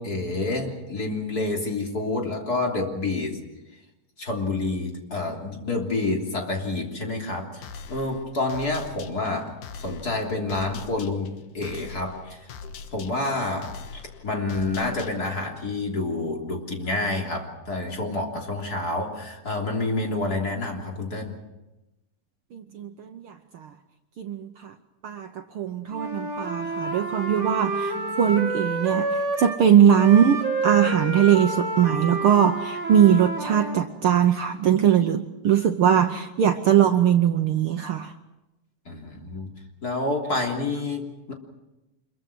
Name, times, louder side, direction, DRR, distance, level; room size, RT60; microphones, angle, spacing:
voice 1, 0.0-3.4 4.2-12.5 12.9-21.4 38.9-39.5 39.8-41.3, left 2 dB, 30° left, 1 dB, 3.6 m, -28 dB
sound 1, 7.6-15.5, left 5 dB, 75° left, 2.9 m, -42 dB
voice 2, 22.5-23.7 24.2-24.7 25.0-38.1, right 9 dB, 80° right, 6 dB, 1.2 m, -21 dB
Wind instrument woodwind instrument, 25.9-29.6 29.9-33.8, right 3 dB, 30° right, 1.6 m, -29 dB
26.5 x 22.5 x 6.2 m, 0.99 s
omnidirectional pair, 3.7 m